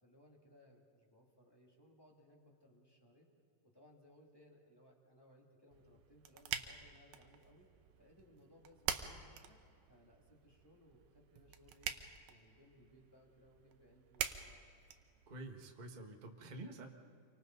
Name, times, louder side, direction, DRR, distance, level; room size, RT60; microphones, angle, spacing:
voice 1, 0.0-3.3 3.7-7.7 8.0-9.6 9.9-11.9 12.3-14.7, left 1 dB, 10° left, -1 dB, 2.1 m, -65 dB
sound 1, 5.7-15.7, right 10 dB, 85° right, 2.5 m, -46 dB
voice 2, 15.3-16.9, right 2 dB, 60° right, 2 dB, 0.4 m, -49 dB
28.5 x 24.0 x 4.0 m, 2.4 s
omnidirectional pair, 3.8 m